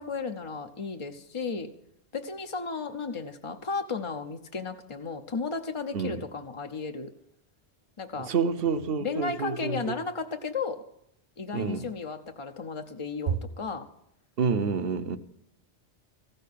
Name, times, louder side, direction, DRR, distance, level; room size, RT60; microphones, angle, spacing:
voice 1, 0.0-1.7 2.1-7.1 8.0-8.3 9.0-10.8 11.4-13.9, left 4 dB, 35° left, 0.6 m, -34 dB
voice 2, 8.2-10.0 11.5-11.9 13.3-13.4 14.4-15.2, right 5 dB, 60° right, 0.9 m, -28 dB
15.0 x 6.6 x 8.4 m
omnidirectional pair, 1.2 m